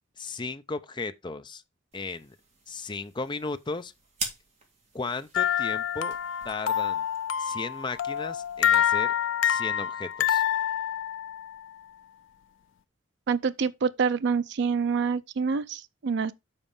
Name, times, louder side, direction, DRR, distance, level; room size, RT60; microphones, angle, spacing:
voice 1, 0.2-1.6 1.9-2.4 2.7-3.9 4.9-6.2 6.4-7.0 7.4-9.1 9.4-10.4, left 3 dB, 25° left, 0.6 m, -35 dB
sound 1, 1.9-8.7, right 4 dB, 40° right, 2.4 m, -44 dB
sound 2, 5.3-11.6, left 10 dB, 70° left, 0.4 m, -27 dB
voice 2, 13.3-16.3, right 5 dB, 65° right, 0.4 m, -26 dB
7.2 x 4.3 x 5.4 m
head